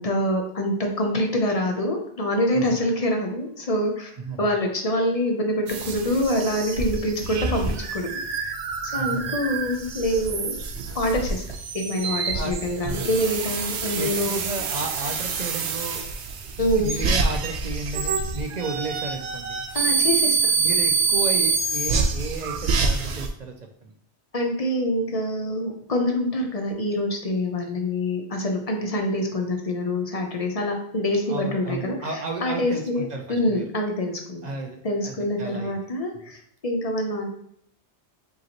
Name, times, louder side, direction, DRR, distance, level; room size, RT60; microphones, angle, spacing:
voice 1, 0.0-4.1 4.4-8.4 8.8-10.6 10.9-11.4 11.7-14.3 16.6-16.9 19.7-20.5 24.3-32.1 32.4-34.4 34.8-37.3, left 1 dB, 40° left, 2 dB, 0.6 m, -25 dB
voice 2, 4.2-4.5 8.9-9.4 12.3-13.2 13.9-16.0 16.5-19.6 20.6-23.5 23.8-23.9 31.3-33.6 34.4-35.7 36.1-36.2, right 3 dB, 55° right, 3 dB, 0.5 m, -33 dB
sound 1, 5.7-23.3, right 4 dB, 80° right, 0.9 m, -26 dB
5.1 x 2.9 x 2.9 m, 0.69 s
omnidirectional pair, 1.1 m